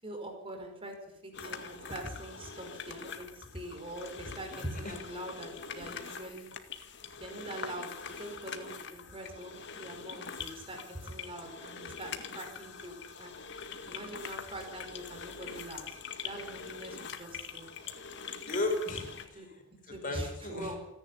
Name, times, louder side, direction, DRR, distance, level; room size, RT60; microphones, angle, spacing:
voice 1, 0.0-6.5 7.2-7.9 8.2-13.3 13.9-18.0 18.4-18.5 19.3-19.5 19.9-20.8, right 1 dB, 25° right, 3 dB, 5.2 m, -43 dB
sound 1, 1.3-19.3, left 6 dB, 60° left, 2.0 m, -44 dB
voice 2, 4.5-5.0 18.4-20.8, left 2 dB, 40° left, 4 dB, 5.3 m, -36 dB
28.5 x 11.0 x 10.0 m, 0.83 s
head